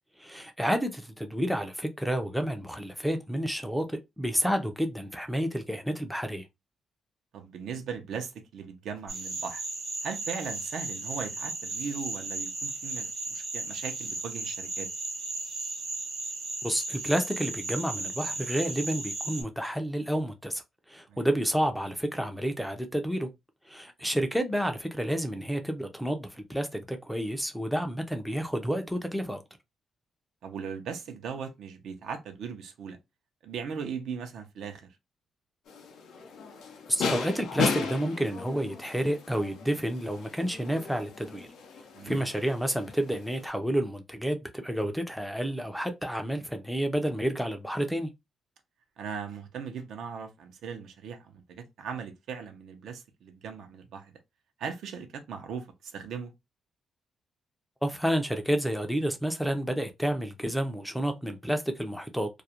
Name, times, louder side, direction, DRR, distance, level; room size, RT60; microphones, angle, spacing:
voice 1, 0.2-6.4 16.6-20.6 20.9-23.3 23.7-29.4 36.9-41.5 42.0-48.1 57.8-62.4, equal, ahead, 0.4 m, -30 dB
voice 2, 7.3-9.6 10.0-14.9 21.1-21.2 30.4-33.0 33.4-34.8 41.9-42.3 49.0-54.1 54.6-56.3, right 6 dB, 80° right, 0.5 m, -38 dB
sound 1, 9.1-19.4, right 3 dB, 65° right, 0.9 m, -35 dB
sound 2, 35.7-43.5, left 5 dB, 85° left, 0.5 m, -36 dB
2.4 x 2.0 x 2.7 m
cardioid pair, 115°, 0 cm